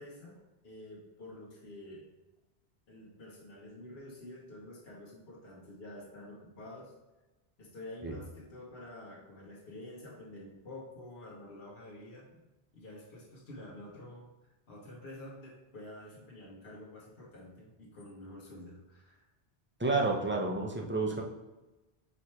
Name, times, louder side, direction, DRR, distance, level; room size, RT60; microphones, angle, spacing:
voice 1, 0.0-2.1 2.9-6.9 7.6-12.3 12.7-14.3 14.7-19.2, left 1 dB, 65° left, -5 dB, 1.5 m, -49 dB
voice 2, 19.8-21.2, right 3 dB, 15° right, 0 dB, 0.6 m, -30 dB
4.9 x 4.3 x 4.6 m, 1.1 s
omnidirectional pair, 1.1 m